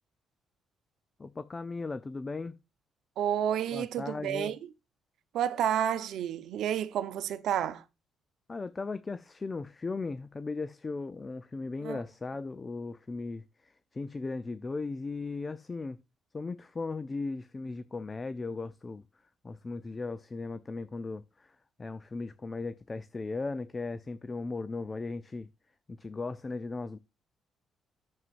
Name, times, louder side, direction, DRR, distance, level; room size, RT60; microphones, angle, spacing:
voice 1, 1.2-2.5 3.7-4.5 8.5-16.0 16.3-19.0 19.4-25.5 25.9-27.0, left 3 dB, 30° left, 0.6 m, -37 dB
voice 2, 3.2-4.6 5.3-7.8 11.8-12.0, right 10 dB, 75° right, 0.9 m, -30 dB
11.0 x 7.4 x 2.5 m
cardioid pair, 90°, 0 cm